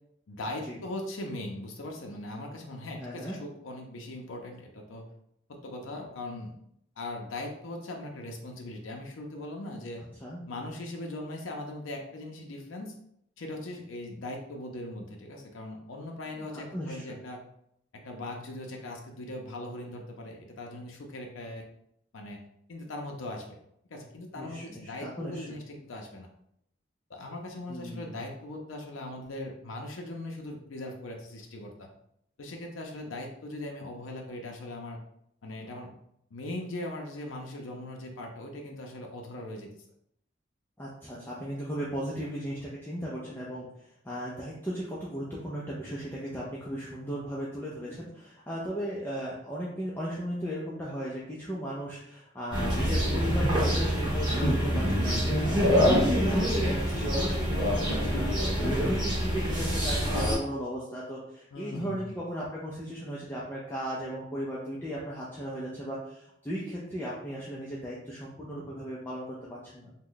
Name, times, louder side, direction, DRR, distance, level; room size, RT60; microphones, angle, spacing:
voice 1, 0.3-5.1 5.5-6.6 7.0-10.0 10.5-13.0 13.4-17.4 17.9-21.6 22.1-22.4 22.7-23.6 23.9-26.3 27.1-31.9 32.4-35.0 35.4-36.0 36.3-39.7 61.5-62.2, left 1 dB, 85° left, 1 dB, 0.5 m, -40 dB
voice 2, 3.0-3.4 10.2-10.4 16.4-16.5 16.7-17.2 24.4-25.5 27.7-28.2 40.8-58.3 58.6-69.9, equal, 10° left, -6 dB, 0.4 m, -36 dB
sound 1, 52.5-60.4, equal, 25° right, 1.2 m, -26 dB
3.0 x 2.2 x 3.8 m, 0.74 s
head